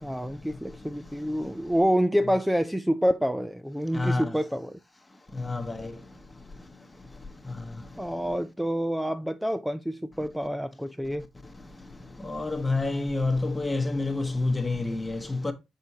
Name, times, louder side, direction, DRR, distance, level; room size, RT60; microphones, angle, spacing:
voice 1, 0.0-4.8 8.0-11.2, equal, ahead, 0.4 m, -27 dB
voice 2, 3.9-4.2 5.4-5.9 12.2-15.5, left 3 dB, 15° left, 1.0 m, -28 dB
6.7 x 6.2 x 2.7 m
cardioid pair, 90°, 0 cm